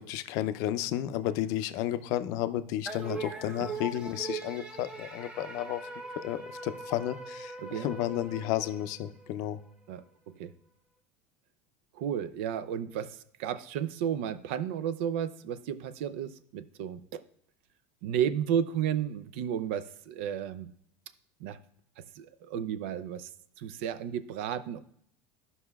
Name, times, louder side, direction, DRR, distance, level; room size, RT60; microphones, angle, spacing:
voice 1, 0.0-5.8 6.2-9.6, left 12 dB, 65° left, 12 dB, 0.5 m, -32 dB
sound 1, 2.9-9.4, right 3 dB, 15° right, 0.9 m, -41 dB
voice 2, 9.9-10.5 12.0-17.2 18.0-20.7 21.4-21.6 22.0-23.3 23.6-24.8, right 9 dB, 85° right, 14 dB, 0.5 m, -33 dB
13.0 x 5.5 x 2.3 m, 0.68 s
supercardioid pair, 135°, 6 cm